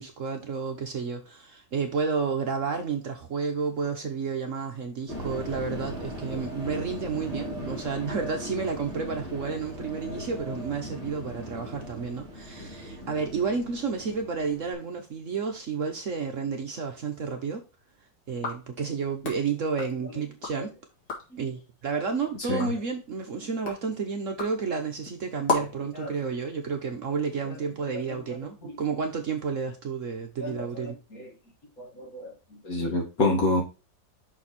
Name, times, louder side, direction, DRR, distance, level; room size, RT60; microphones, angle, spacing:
voice 1, 0.0-17.6 18.3-20.7 21.4-31.0, right 5 dB, 55° right, 1.1 m, -31 dB
sound 1, 5.1-14.7, equal, 20° left, 2.5 m, -38 dB
sound 2, 18.3-20.6 20.9-21.4 21.9-25.9, left 4 dB, 80° left, 2.6 m, -36 dB
voice 2, 30.4-31.3 31.8-32.3 32.6-33.6, left 2 dB, 55° left, 2.5 m, -28 dB
6.2 x 4.6 x 4.2 m
omnidirectional pair, 1.9 m